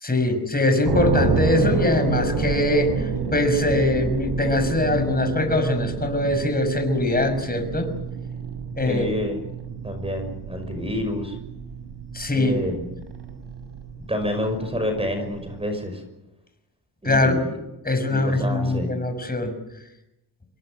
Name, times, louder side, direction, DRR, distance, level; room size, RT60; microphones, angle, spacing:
voice 1, 0.0-7.9 8.8-9.1 12.1-12.6 17.0-17.4 17.8-19.5, left 2 dB, 20° left, 7 dB, 6.1 m, -22 dB
sound 1, 0.8-15.6, right 4 dB, 85° right, 7.1 m, -29 dB
voice 2, 8.8-9.4 9.8-11.4 12.3-12.9 14.1-16.0 17.0-17.6 18.1-18.9, left 1 dB, 15° right, 6 dB, 5.8 m, -28 dB
27.5 x 22.5 x 7.8 m, 0.92 s
wide cardioid pair, 110°, 40 cm